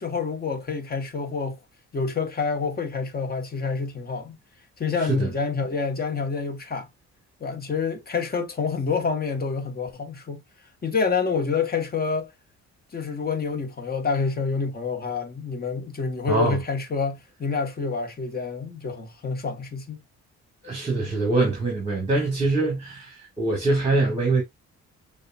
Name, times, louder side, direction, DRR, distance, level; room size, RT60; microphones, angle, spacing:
voice 1, 0.0-1.6 1.9-4.4 4.8-6.9 7.4-10.4 10.8-12.3 12.9-20.0, left 5 dB, 30° left, 1.2 m, -27 dB
voice 2, 20.6-24.4, right 3 dB, 20° right, 1.8 m, -23 dB
6.5 x 2.5 x 2.3 m
cardioid pair, 90°, 30 cm